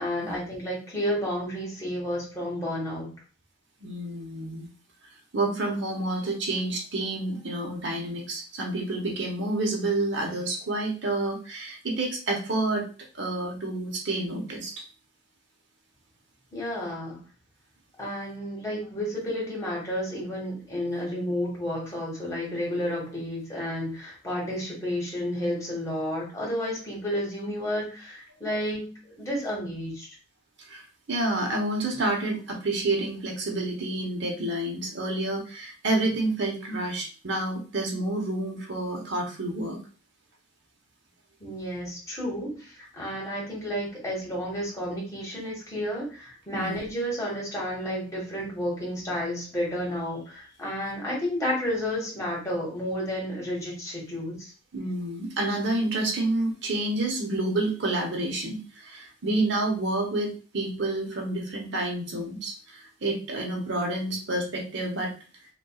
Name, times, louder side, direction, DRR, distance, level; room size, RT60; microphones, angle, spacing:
voice 1, 0.0-3.1 16.5-17.2 18.0-30.1 41.4-54.5, equal, 15° left, -4 dB, 1.6 m, -31 dB
voice 2, 3.8-4.7 5.3-12.9 13.1-14.7 30.7-30.8 31.1-39.8 46.5-46.8 54.7-65.1, right 2 dB, 60° right, 1 dB, 1.0 m, -29 dB
5.3 x 2.6 x 2.4 m, 0.37 s
head